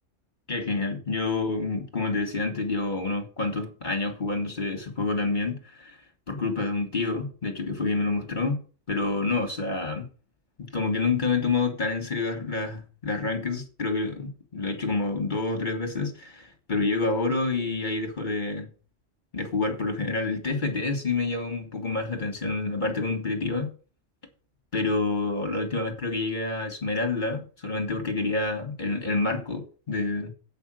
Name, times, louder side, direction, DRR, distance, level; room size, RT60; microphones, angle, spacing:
voice 1, 0.5-6.0 6.3-8.6 8.9-10.1 10.6-18.7 19.3-23.7 24.7-30.3, left 3 dB, 40° left, 1.8 m, -28 dB
8.0 x 5.5 x 7.6 m
omnidirectional pair, 1.3 m